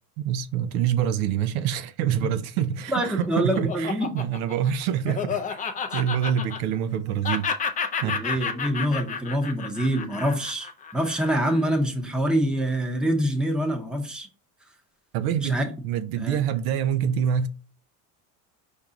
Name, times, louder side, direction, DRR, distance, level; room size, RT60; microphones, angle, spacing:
voice 1, 0.2-7.5 8.0-8.2 15.1-15.6 15.8-17.5, right 9 dB, 75° right, 0.6 m, -26 dB
Laughter, 2.7-7.0 7.2-11.7, left 6 dB, 20° left, 0.4 m, -31 dB
voice 2, 2.9-4.1 8.0-14.3 15.4-15.6 16.2-16.4, right 1 dB, ahead, 0.7 m, -25 dB
4.6 x 2.7 x 3.7 m
supercardioid pair, 115°, 44 cm